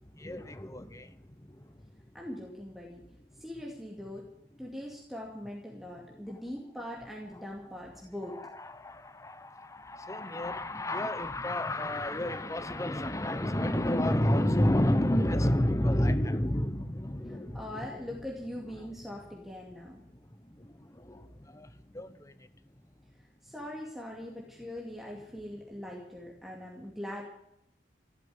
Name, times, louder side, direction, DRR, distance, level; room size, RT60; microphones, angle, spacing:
voice 1, 0.1-1.1 1.4-1.5 6.1-6.2 8.3-17.9 18.8-18.9 20.6-22.3, left 1 dB, 15° left, 12 dB, 0.9 m, -30 dB
voice 2, 2.1-3.0 3.4-4.2 4.6-8.3 17.3-20.0 23.4-27.2, left 1 dB, ahead, -2 dB, 2.3 m, -41 dB
15.0 x 10.0 x 9.6 m, 0.77 s
head